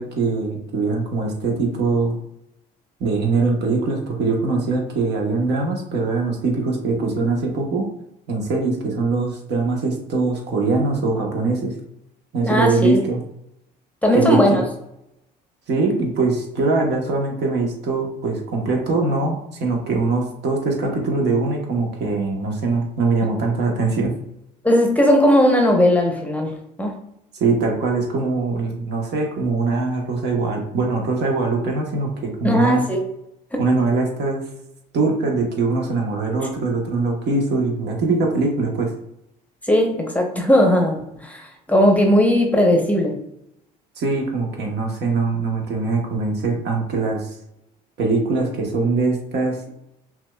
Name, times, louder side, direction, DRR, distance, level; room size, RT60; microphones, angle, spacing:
voice 1, 0.0-2.1 3.0-7.8 8.3-11.7 12.3-13.2 14.1-14.6 15.7-24.1 27.3-32.8 33.6-34.4 34.9-38.9 44.0-47.3 48.0-49.7, right 3 dB, 55° right, 1 dB, 1.1 m, -22 dB
voice 2, 12.5-13.0 14.0-14.6 24.6-26.5 26.8-26.9 32.4-33.0 33.5-33.6 39.7-43.1, left 1 dB, 5° left, 2 dB, 0.8 m, -17 dB
5.7 x 2.4 x 2.3 m, 0.80 s
hypercardioid pair, 65°, 21 cm